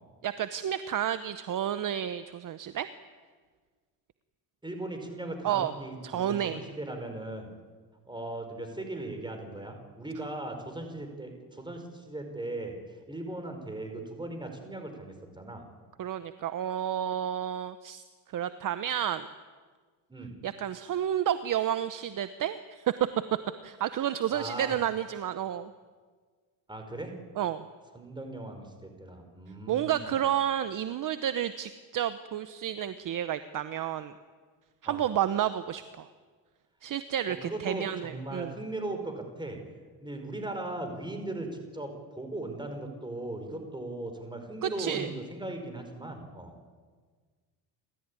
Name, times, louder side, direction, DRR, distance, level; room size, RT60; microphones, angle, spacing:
voice 1, 0.2-2.9 5.4-5.7 6.0-6.6 16.0-18.0 18.3-19.3 20.4-22.9 23.6-25.7 27.4-27.6 29.7-34.1 34.8-36.1 36.8-38.5 44.6-45.1, right 10 dB, 40° right, 12 dB, 0.9 m, -31 dB
voice 2, 4.6-7.5 8.0-15.6 20.1-20.3 24.3-24.8 26.7-27.2 27.9-30.1 34.8-35.0 37.2-39.6 40.0-46.5, right 2 dB, 10° right, 5 dB, 5.1 m, -38 dB
29.0 x 13.5 x 9.7 m, 1.5 s
cardioid pair, 110°, 47 cm